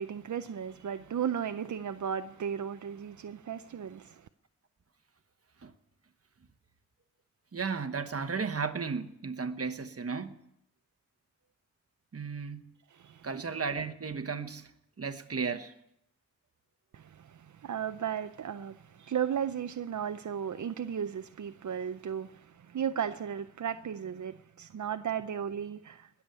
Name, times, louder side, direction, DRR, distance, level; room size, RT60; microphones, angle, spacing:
voice 1, 0.0-4.3 12.9-13.3 16.9-26.1, right 8 dB, 85° right, 0.5 m, -35 dB
voice 2, 7.5-10.4 12.1-12.8 13.2-14.7 15.0-15.7, right 5 dB, 55° right, 1.1 m, -34 dB
20.0 x 7.1 x 9.1 m
wide cardioid pair, 100°, 29 cm